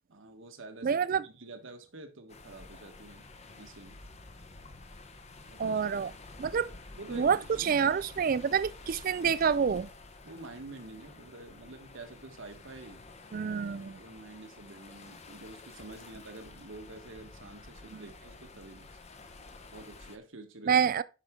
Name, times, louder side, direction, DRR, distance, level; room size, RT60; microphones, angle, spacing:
voice 1, 0.1-3.3 3.6-4.0 5.5-5.8 7.0-7.9 8.3-8.4 10.2-13.0 13.6-19.0 19.7-20.8, right 2 dB, 65° right, 1.4 m, -48 dB
voice 2, 0.8-1.2 5.6-6.1 6.4-6.7 7.1-9.9 13.3-14.0 17.9-18.0 20.7-21.0, right 6 dB, 45° right, 0.4 m, -27 dB
sound 1, 2.3-20.2, left 3 dB, 35° left, 0.9 m, -50 dB
8.9 x 5.9 x 3.7 m
head